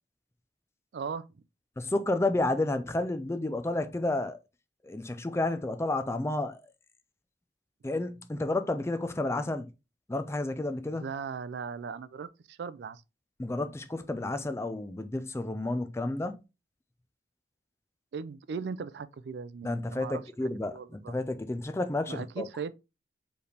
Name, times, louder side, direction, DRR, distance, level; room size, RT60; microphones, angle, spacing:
voice 1, 0.9-1.2 10.9-13.0 18.1-20.2 20.7-21.1 22.1-22.7, right 5 dB, 75° right, 0.4 m, -38 dB
voice 2, 1.8-4.4 4.8-6.7 7.8-9.7 10.1-11.0 13.4-16.4 19.6-22.5, left 2 dB, 15° left, 0.4 m, -31 dB
4.7 x 3.3 x 3.3 m
head